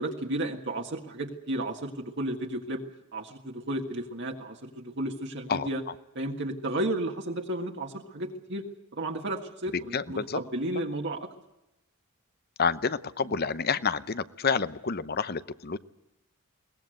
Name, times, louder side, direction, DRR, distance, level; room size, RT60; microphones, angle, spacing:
voice 1, 0.0-2.8 3.1-5.8 6.2-8.6 8.9-11.3 13.3-13.4, right 1 dB, 55° right, 2 dB, 1.8 m, -33 dB
voice 2, 9.7-10.4 12.6-15.8, left 5 dB, 45° left, 15 dB, 0.8 m, -29 dB
22.5 x 19.0 x 7.8 m, 0.92 s
head